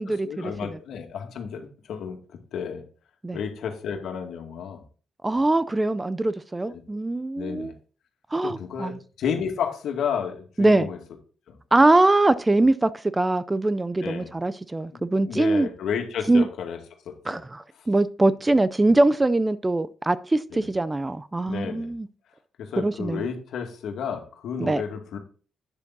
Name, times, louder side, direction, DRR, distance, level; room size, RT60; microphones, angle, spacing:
voice 1, 0.1-2.8 3.3-4.8 6.7-6.8 7.4-7.7 8.4-11.0 11.5-11.6 14.0-14.3 14.9-16.8 17.1-17.4 20.5-20.7 21.4-21.9 22.6-25.2, left 7 dB, 70° left, 2.2 m, -32 dB
voice 2, 5.2-7.7 8.3-9.0 10.6-10.9 11.7-15.7 16.3-16.5 17.3-22.1 22.8-23.2 24.6-24.8, right 2 dB, 15° right, 0.5 m, -22 dB
9.8 x 6.9 x 4.1 m
cardioid pair, 90°, 0 cm